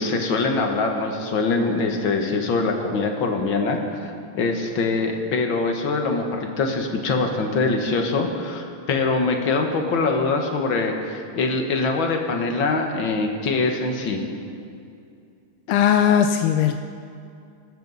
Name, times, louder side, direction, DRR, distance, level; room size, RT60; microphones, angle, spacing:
voice 1, 0.0-14.2, left 3 dB, 65° left, 3 dB, 2.2 m, -23 dB
voice 2, 15.7-16.8, left 9 dB, 85° left, 7 dB, 1.5 m, -18 dB
25.0 x 12.0 x 4.1 m, 2.5 s
omnidirectional pair, 2.4 m